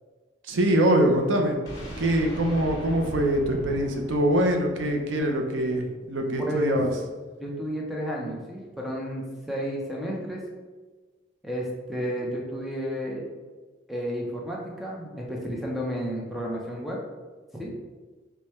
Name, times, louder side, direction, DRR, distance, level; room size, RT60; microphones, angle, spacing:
voice 1, 0.4-1.6 2.0-6.9, right 1 dB, 90° right, 3 dB, 0.6 m, -23 dB
sound 1, 1.6-5.6, equal, 20° left, 1.1 m, -39 dB
voice 2, 6.5-6.8 7.4-10.4 11.4-13.2 13.9-17.0 17.5-17.7, equal, ahead, -3 dB, 0.6 m, -31 dB
4.8 x 2.2 x 4.2 m, 1.3 s
head